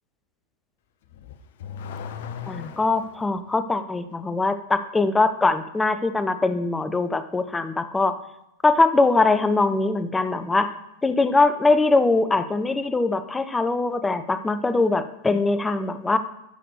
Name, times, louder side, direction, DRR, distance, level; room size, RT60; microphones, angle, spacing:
Car / Accelerating revving vroom, 1.0-3.3, left 7 dB, 55° left, 0.5 m, -37 dB
voice 1, 2.5-8.1 8.6-10.7 11.0-16.2, left 3 dB, 10° left, 11 dB, 0.5 m, -22 dB
13.0 x 5.8 x 3.2 m, 0.89 s
figure-of-eight pair, 90°, 0 cm